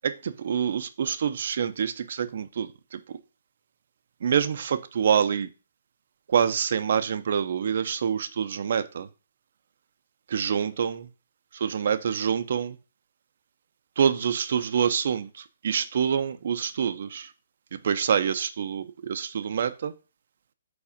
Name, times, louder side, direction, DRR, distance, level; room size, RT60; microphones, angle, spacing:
voice 1, 0.0-3.0 4.2-5.5 6.3-9.1 10.3-11.1 11.5-12.7 14.0-15.3 15.6-17.3 17.8-19.9, right 7 dB, 55° right, 0.5 m, -26 dB
4.9 x 4.1 x 5.0 m
hypercardioid pair, 150°, 0 cm